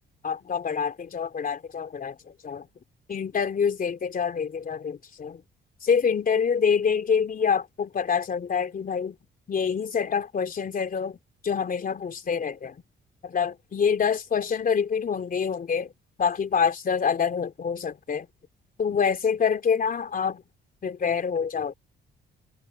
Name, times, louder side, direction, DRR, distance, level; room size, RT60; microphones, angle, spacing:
voice 1, 0.2-2.7 3.1-5.4 5.8-9.2 9.5-11.2 11.4-12.7 13.2-15.9 16.2-18.3 18.8-20.4 20.8-21.7, left 6 dB, 45° left, 3.4 m, -26 dB
cardioid pair, 90°, 20 cm